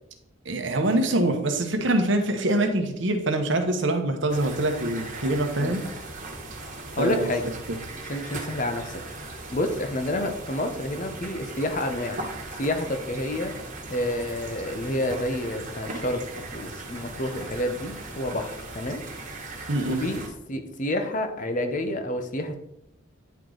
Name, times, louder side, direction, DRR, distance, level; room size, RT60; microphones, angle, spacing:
voice 1, 0.4-5.8 7.0-7.3 7.7-7.8 19.7-20.0, right 1 dB, 65° right, 6 dB, 1.0 m, -24 dB
sound 1, 4.3-20.3, right 2 dB, 40° right, 1.4 m, -38 dB
voice 2, 7.0-7.5 8.1-9.0 9.5-12.2 12.5-13.5 13.9-19.0 19.9-20.2 20.5-22.5, left 1 dB, 40° left, 7 dB, 0.7 m, -29 dB
9.3 x 4.7 x 3.9 m, 0.82 s
head